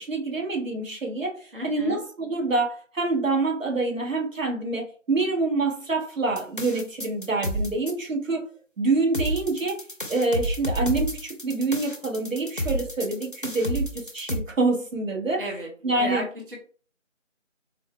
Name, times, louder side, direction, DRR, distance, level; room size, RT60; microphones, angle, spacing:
voice 1, 0.0-8.5 8.8-15.4 15.8-16.2, right 3 dB, 85° right, 1.3 m, -26 dB
voice 2, 1.5-2.0 15.4-15.7 16.0-16.6, equal, 45° right, 0.7 m, -33 dB
sound 1, 6.4-7.9 9.1-14.4, equal, 45° left, 0.5 m, -30 dB
3.7 x 2.1 x 3.2 m
figure-of-eight pair, 175°, 38 cm